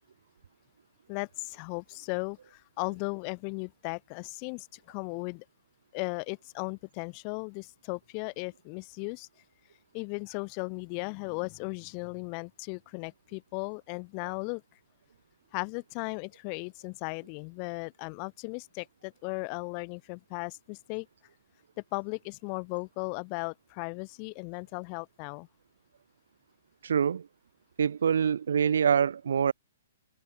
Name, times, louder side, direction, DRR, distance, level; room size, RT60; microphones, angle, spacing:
voice 1, 1.1-5.4 5.9-9.3 9.9-14.6 15.5-21.1 21.9-25.5, left 40 dB or more, 25° left, 1.4 m, -36 dB
voice 2, 26.8-27.2 27.8-29.5, right 7 dB, 70° right, 0.3 m, -25 dB
hypercardioid pair, 175°, 0 cm